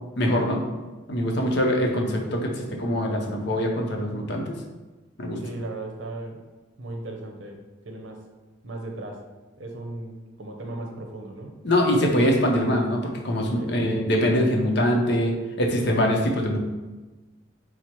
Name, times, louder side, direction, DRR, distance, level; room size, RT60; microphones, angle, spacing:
voice 1, 0.2-0.6 1.1-4.5 5.2-5.4 11.6-16.6, equal, 55° left, 1 dB, 0.6 m, -23 dB
voice 2, 5.3-6.4 6.8-7.6 7.8-8.2 8.6-9.2 9.6-11.5 13.6-13.7, right 2 dB, 65° right, 2 dB, 0.7 m, -36 dB
4.3 x 2.0 x 4.4 m, 1.2 s
head